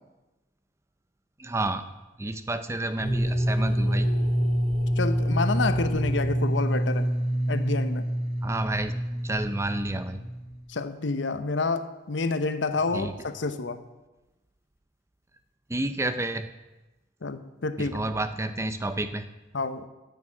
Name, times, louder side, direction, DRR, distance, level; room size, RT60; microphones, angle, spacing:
voice 1, 1.4-1.8 2.2-4.1 8.4-9.0 9.2-10.2 12.9-13.1 15.7-16.5 17.8-19.3, right 2 dB, 15° right, 11 dB, 0.5 m, -30 dB
sound 1, 3.0-10.7, equal, 50° left, 3.3 m, -26 dB
voice 2, 5.0-7.1 7.5-8.0 10.7-13.8 17.2-18.0 19.5-19.9, left 3 dB, 70° left, 11 dB, 0.8 m, -28 dB
10.5 x 6.9 x 8.5 m, 1.1 s
head